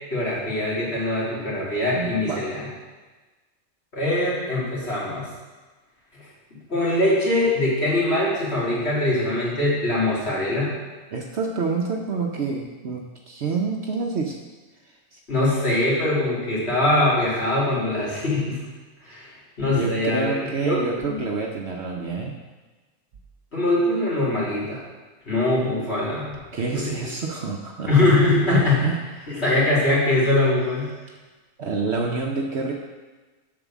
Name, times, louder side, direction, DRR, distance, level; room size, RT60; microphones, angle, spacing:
voice 1, 0.1-2.7 3.9-5.3 6.7-10.7 15.3-18.6 19.1-19.3 19.6-21.2 23.5-24.8 25.3-26.3 26.7-26.9 27.9-28.8 29.3-30.8, left 2 dB, 45° left, -8 dB, 2.9 m, -22 dB
voice 2, 1.9-2.4 11.1-14.4 15.1-15.2 19.7-22.3 26.5-28.1 28.5-29.4 31.6-32.7, right 4 dB, 55° right, 1 dB, 0.9 m, -28 dB
7.3 x 4.9 x 7.1 m, 1.3 s
omnidirectional pair, 1.5 m